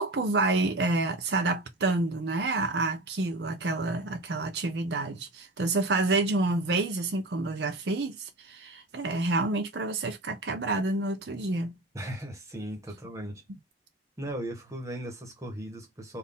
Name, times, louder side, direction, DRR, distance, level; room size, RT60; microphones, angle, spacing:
voice 1, 0.0-11.8, right 2 dB, 70° right, 0.6 m, -28 dB
voice 2, 11.9-13.4 14.2-16.2, right 1 dB, 15° right, 1.2 m, -37 dB
4.1 x 2.6 x 3.5 m
head